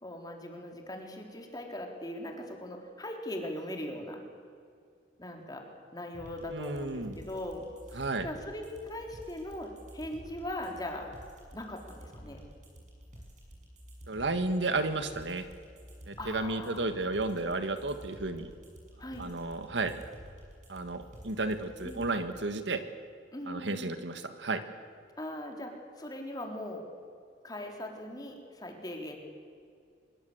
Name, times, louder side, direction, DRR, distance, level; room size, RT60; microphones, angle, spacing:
voice 1, 0.0-4.2 5.2-5.6 5.9-11.1 11.5-12.4 16.2-16.9 19.0-19.3 21.8-22.1 23.3-24.0 25.2-26.8 27.4-29.2, left 1 dB, 20° left, 2 dB, 3.9 m, -40 dB
sound 1, 6.1-22.1, equal, 45° right, 6.4 m, -51 dB
voice 2, 6.5-7.2 8.0-8.3 14.1-15.4 16.1-18.5 19.2-20.0 20.7-22.8 23.5-24.6, right 2 dB, 85° right, 9 dB, 1.9 m, -32 dB
24.5 x 23.0 x 8.1 m, 2.3 s
head